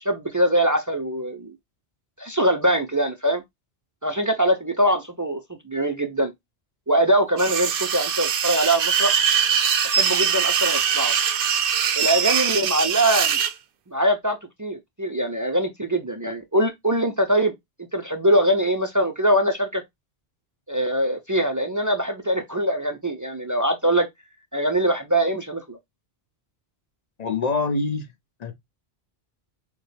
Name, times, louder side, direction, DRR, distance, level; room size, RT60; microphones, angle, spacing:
voice 1, 0.0-1.5 2.2-3.4 4.0-6.3 6.9-9.2 9.9-11.1 11.9-13.4 13.9-17.5 17.9-19.8 20.7-24.1 24.5-25.8, right 1 dB, 30° right, 0.3 m, -23 dB
sound 1, 7.4-13.5, right 8 dB, 65° right, 0.8 m, -22 dB
voice 2, 27.2-28.1 28.4-28.5, left 3 dB, 45° left, 0.7 m, -25 dB
6.4 x 2.2 x 3.3 m
omnidirectional pair, 1.1 m